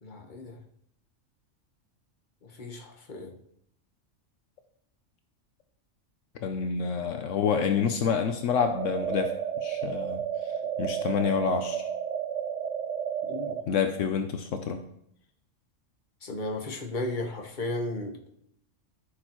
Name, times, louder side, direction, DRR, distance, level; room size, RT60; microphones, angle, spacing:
voice 1, 0.0-0.6 2.4-3.3 13.3-13.6 16.2-18.3, left 2 dB, 40° left, 3 dB, 1.4 m, -35 dB
voice 2, 6.4-9.3 9.6-10.2 10.8-11.9 13.7-14.8, left 6 dB, 75° left, 7 dB, 1.1 m, -28 dB
sound 1, 8.6-13.6, right 8 dB, 75° right, 1.1 m, -32 dB
14.0 x 6.6 x 3.1 m, 0.73 s
omnidirectional pair, 1.3 m